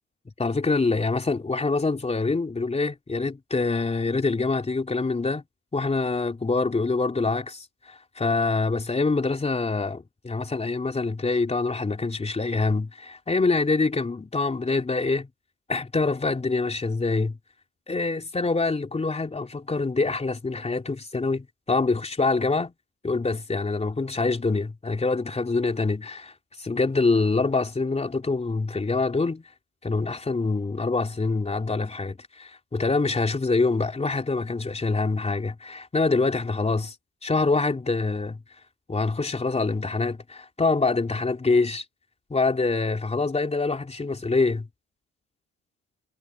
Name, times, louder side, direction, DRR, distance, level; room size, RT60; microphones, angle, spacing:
voice 1, 0.4-5.4 5.7-15.3 15.7-17.4 17.9-22.7 23.0-26.3 26.6-29.4 29.8-36.9 37.2-38.4 38.9-41.8 42.3-44.7, left 3 dB, 20° left, 3.5 m, -25 dB
cardioid pair, 85°, 29 cm